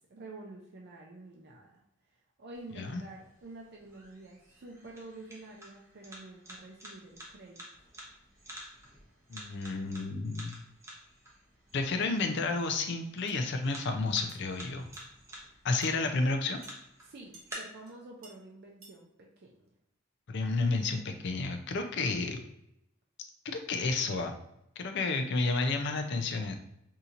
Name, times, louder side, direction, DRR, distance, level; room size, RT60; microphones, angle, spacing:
voice 1, 0.1-1.8 2.4-7.6 17.0-19.7, right 2 dB, 55° right, -2 dB, 0.5 m, -49 dB
sound 1, 2.5-17.5, right 1 dB, 15° right, 0.7 m, -51 dB
voice 2, 9.3-10.6 11.7-14.9 15.6-16.6 20.3-22.4 23.4-24.3 24.8-26.6, left 3 dB, 60° left, 6 dB, 0.4 m, -31 dB
sound 2, 13.3-13.4 14.3-14.4 14.9-15.1 15.8-15.9 16.6-16.8 17.3-17.5 17.8-17.9 18.2-18.3 18.8-19.0, right 2 dB, 85° right, 0.9 m, -54 dB
4.1 x 2.8 x 2.5 m, 0.80 s
head